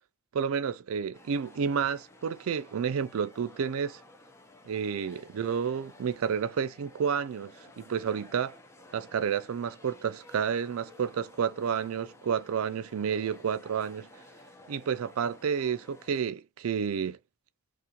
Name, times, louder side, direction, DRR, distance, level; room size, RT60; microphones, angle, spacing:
voice 1, 0.3-4.0 4.7-8.6 8.9-14.1 14.7-17.2, right 7 dB, 75° right, 0.4 m, -30 dB
sound 1, 1.1-16.2, left 2 dB, 15° left, 0.6 m, -54 dB
2.5 x 2.4 x 2.7 m
head